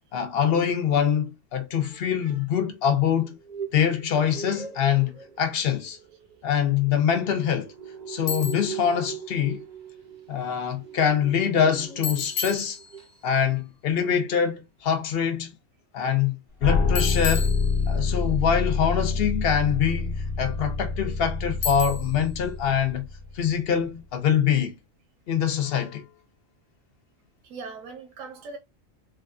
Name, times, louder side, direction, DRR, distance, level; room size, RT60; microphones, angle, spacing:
voice 1, 0.1-3.4 3.7-6.0 6.4-7.7 8.1-9.6 10.3-12.8 13.2-15.5 15.9-17.6 17.9-23.1 23.3-24.7 25.3-26.1, left 8 dB, 60° left, 0.7 m, -24 dB
voice 2, 1.8-2.5 27.4-28.6, right 4 dB, 80° right, 1.1 m, -41 dB
sound 1, 3.2-12.5 12.8-13.1 13.4-13.5, right 7 dB, 55° right, 0.5 m, -41 dB
Bicycle, 8.3-8.8 12.0-13.3 17.0-18.2 21.6-22.3, left 6 dB, 80° left, 1.0 m, -33 dB
sound 2, 16.6-23.5, left 4 dB, 25° left, 0.8 m, -27 dB
3.5 x 2.3 x 2.4 m
omnidirectional pair, 1.4 m